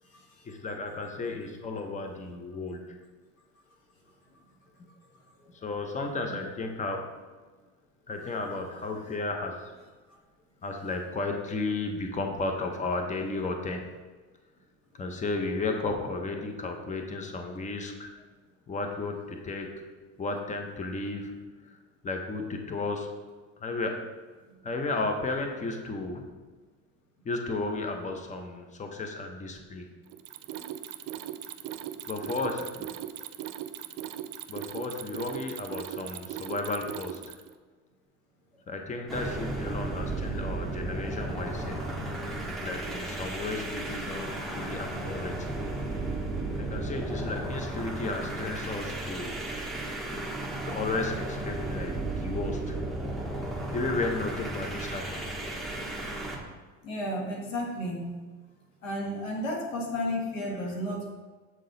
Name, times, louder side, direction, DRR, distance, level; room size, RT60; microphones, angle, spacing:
voice 1, 0.4-3.0 4.8-4.9 5.5-7.1 8.1-9.8 10.6-13.9 15.0-18.1 18.7-19.8 20.2-21.3 21.6-21.8 22.0-23.1 23.6-24.0 24.6-26.2 27.2-29.9 32.1-32.9 34.5-37.2 38.7-41.8 42.6-45.5 46.6-49.4 50.6-52.8 53.7-55.2 60.7-60.8, left 3 dB, 20° left, 4 dB, 0.8 m, -33 dB
Mechanisms, 30.1-37.5, right 11 dB, 65° right, 0.6 m, -39 dB
sound 1, 39.1-56.4, right 2 dB, ahead, 1.1 m, -34 dB
voice 2, 56.8-58.1 58.8-61.1, left 1 dB, 90° left, -1 dB, 1.5 m, -32 dB
7.5 x 3.9 x 3.9 m, 1.4 s
hypercardioid pair, 85°, 38 cm